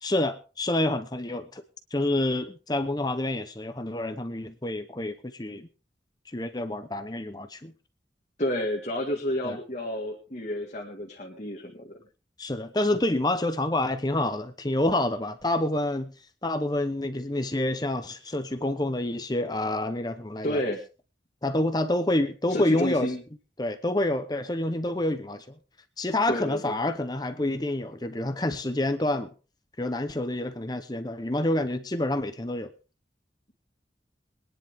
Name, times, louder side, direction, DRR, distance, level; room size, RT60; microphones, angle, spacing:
voice 1, 0.0-1.6 1.9-5.7 6.3-7.7 9.4-9.6 12.4-16.1 16.4-20.6 21.4-23.1 23.6-25.5 26.0-29.3 29.8-32.7, left 1 dB, 20° left, 9 dB, 0.9 m, -28 dB
voice 2, 8.4-11.9 20.4-20.8 22.5-23.2 26.3-26.8, left 1 dB, 40° left, 1 dB, 2.0 m, -30 dB
22.0 x 10.5 x 3.6 m, 0.34 s
head